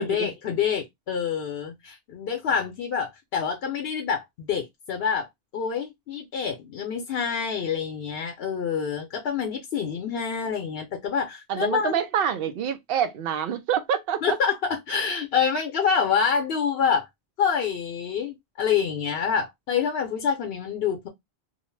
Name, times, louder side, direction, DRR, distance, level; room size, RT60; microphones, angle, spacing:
voice 1, 0.0-5.3 5.5-11.9 14.2-17.1 17.4-21.1, left 7 dB, 70° left, 0.8 m, -27 dB
voice 2, 11.5-14.4, right 8 dB, 70° right, 0.7 m, -26 dB
2.7 x 2.0 x 3.1 m
omnidirectional pair, 1.1 m